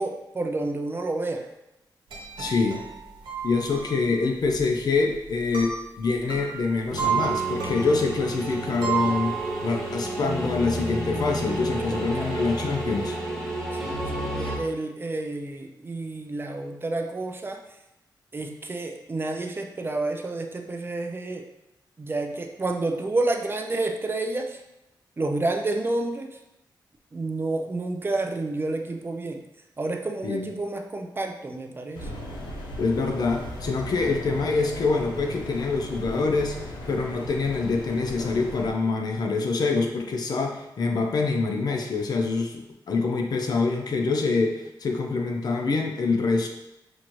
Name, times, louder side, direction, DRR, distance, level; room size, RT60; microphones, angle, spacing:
voice 1, 0.0-1.5 12.0-12.4 13.7-17.6 18.3-21.5 22.0-24.6 25.2-26.4 27.1-29.4 29.8-32.1, right 2 dB, 30° right, 4 dB, 0.4 m, -29 dB
sound 1, 2.1-9.9 10.4-10.5 10.7-11.3 11.6-13.1, right 7 dB, 90° right, 1.0 m, -32 dB
voice 2, 2.4-2.8 3.4-9.3 9.6-13.2 30.2-30.5 32.8-36.6 36.9-46.5, left 4 dB, 55° left, 3 dB, 0.6 m, -25 dB
sound 2, 6.9-14.6, right 1 dB, 5° left, 1.1 m, -31 dB
sound 3, 31.9-38.7, left 1 dB, 90° left, 0.8 m, -37 dB
5.9 x 2.7 x 3.0 m, 0.90 s
wide cardioid pair, 105°, 8 cm